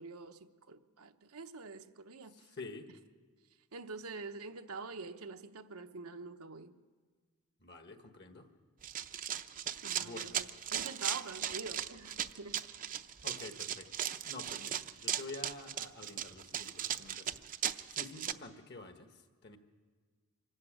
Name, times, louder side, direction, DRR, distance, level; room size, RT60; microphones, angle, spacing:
voice 1, 0.0-2.5 3.7-6.7 9.8-12.6, right 4 dB, 85° right, 0.9 m, -46 dB
voice 2, 2.3-2.9 7.6-8.5 10.0-10.4 13.2-17.4 17.9-19.6, left 3 dB, 50° left, 1.5 m, -49 dB
Run, 8.8-18.3, right 10 dB, 40° right, 0.6 m, -37 dB
24.5 x 13.5 x 8.9 m
head